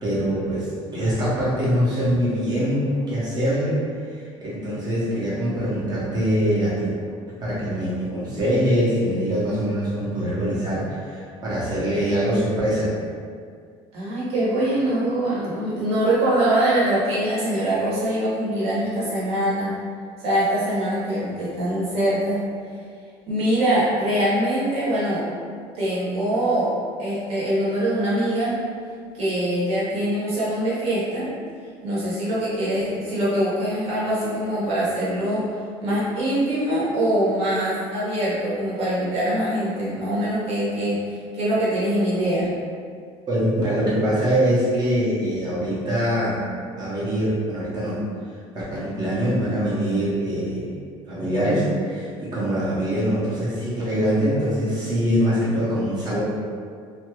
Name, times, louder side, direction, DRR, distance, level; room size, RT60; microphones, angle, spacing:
voice 1, 0.0-6.9 7.4-12.9 43.3-46.5 46.7-48.0 48.5-50.7 51.1-56.2, equal, 35° right, -9 dB, 1.0 m, -23 dB
voice 2, 13.9-19.7 20.2-22.4 23.3-25.2 25.7-26.7 27.0-28.6 29.1-31.3 31.8-35.5 35.8-42.5, right 1 dB, 55° right, -8 dB, 1.2 m, -23 dB
2.8 x 2.3 x 3.0 m, 2.1 s
cardioid pair, 130°, 12 cm